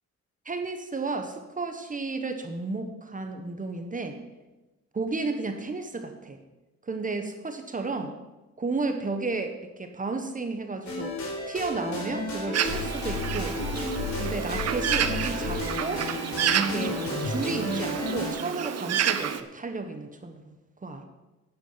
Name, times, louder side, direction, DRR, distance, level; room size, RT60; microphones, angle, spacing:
voice 1, 0.4-4.2 4.9-6.4 6.8-8.1 8.6-11.2 11.5-13.6 14.2-16.1 16.5-20.5 20.8-21.0, right 3 dB, 25° right, 6 dB, 1.3 m, -33 dB
sound 1, 10.9-18.3, left 2 dB, 65° left, 4.3 m, -32 dB
Bird, 12.5-19.4, right 9 dB, 55° right, 0.8 m, -30 dB
9.8 x 9.5 x 5.7 m, 1.1 s
cardioid pair, 90°, 30 cm